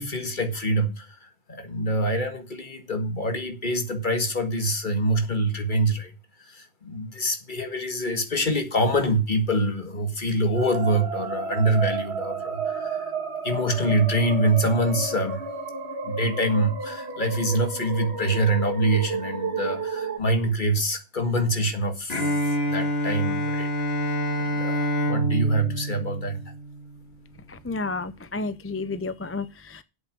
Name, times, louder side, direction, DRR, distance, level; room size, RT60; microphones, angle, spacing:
voice 1, 0.0-6.1 6.4-13.1 13.4-15.4 16.0-23.7 24.4-26.4, right 1 dB, 50° left, 1.9 m, -25 dB
sound 1, 10.5-20.2, right 4 dB, 80° right, 1.9 m, -32 dB
Bowed string instrument, 22.1-27.0, equal, 70° left, 2.0 m, -27 dB
voice 2, 27.5-29.8, left 3 dB, 20° left, 0.4 m, -31 dB
8.2 x 6.9 x 7.6 m
omnidirectional pair, 1.1 m